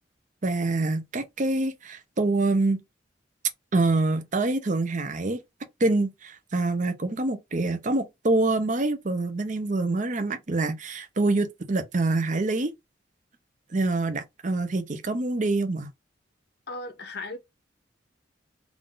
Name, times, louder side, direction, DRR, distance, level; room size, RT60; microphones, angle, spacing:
voice 1, 0.4-2.8 3.7-5.4 5.8-12.7 13.7-15.9, right 2 dB, 40° right, 0.7 m, -26 dB
voice 2, 16.7-17.4, left 2 dB, 60° left, 0.9 m, -36 dB
3.6 x 2.5 x 3.7 m
head